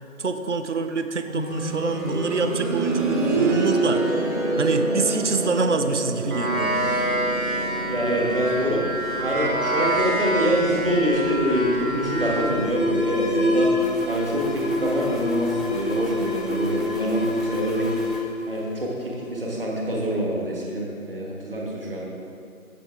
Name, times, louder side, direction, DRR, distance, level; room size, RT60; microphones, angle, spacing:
voice 1, 0.2-4.0 4.6-7.0, right 4 dB, 55° right, 9 dB, 0.5 m, -26 dB
sound 1, 1.2-12.0 12.3-12.4 13.3-13.4, right 2 dB, 25° right, 1.6 m, -27 dB
sound 2, 6.3-12.4, right 1 dB, 75° right, 1.5 m, -27 dB
voice 2, 7.9-8.8 9.2-13.7 14.1-18.0 18.5-22.1, equal, 40° right, -3 dB, 1.5 m, -25 dB
Alarm, 10.8-19.4, left 1 dB, ahead, 0.4 m, -27 dB
7.7 x 7.5 x 3.5 m, 2.4 s
figure-of-eight pair, 160°, 42 cm